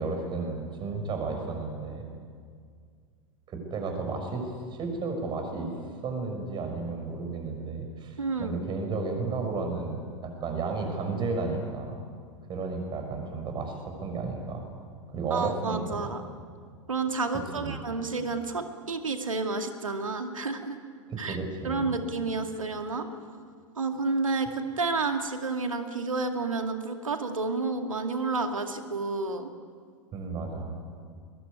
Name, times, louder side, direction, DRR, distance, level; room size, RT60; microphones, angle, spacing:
voice 1, 0.0-2.1 3.5-4.5 4.8-5.7 6.0-11.9 12.5-14.6 15.1-16.1 17.6-17.8 21.1-21.9 30.1-30.8, right 3 dB, 30° right, 4 dB, 6.3 m, -33 dB
voice 2, 8.2-8.6 15.3-16.2 16.9-20.8 21.2-21.4 21.6-23.1 23.8-29.5, right 3 dB, 80° right, 6 dB, 2.3 m, -30 dB
22.0 x 21.5 x 9.4 m, 2.1 s
figure-of-eight pair, 95°, 17 cm